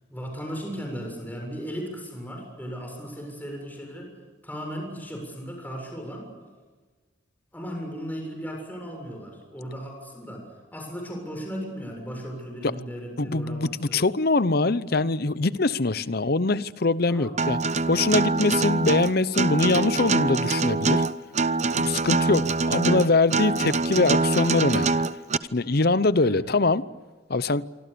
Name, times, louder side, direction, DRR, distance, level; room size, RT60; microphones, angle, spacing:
voice 1, 0.1-4.1 4.4-6.3 7.5-14.0 17.1-17.3 26.2-26.5, equal, 10° left, 1 dB, 7.1 m, -36 dB
voice 2, 13.2-17.6 17.9-21.0 21.8-25.0 25.5-26.9 27.3-27.7, left 3 dB, 50° left, 16 dB, 0.8 m, -23 dB
Acoustic guitar, 17.4-25.4, right 3 dB, 35° right, 0.7 m, -24 dB
27.0 x 25.0 x 6.9 m, 1.4 s
head